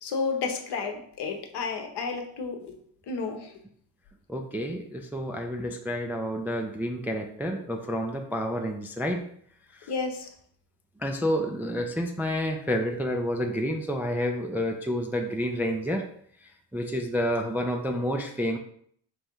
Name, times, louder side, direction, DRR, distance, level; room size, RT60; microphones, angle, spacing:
voice 1, 0.0-2.8 3.1-3.5 9.9-10.3, left 4 dB, 60° left, 4 dB, 0.9 m, -31 dB
voice 2, 4.3-9.3 9.7-9.9 11.0-16.1 16.4-18.6, equal, 5° right, 3 dB, 0.3 m, -29 dB
3.4 x 2.6 x 4.4 m, 0.64 s
supercardioid pair, 60°, 45 cm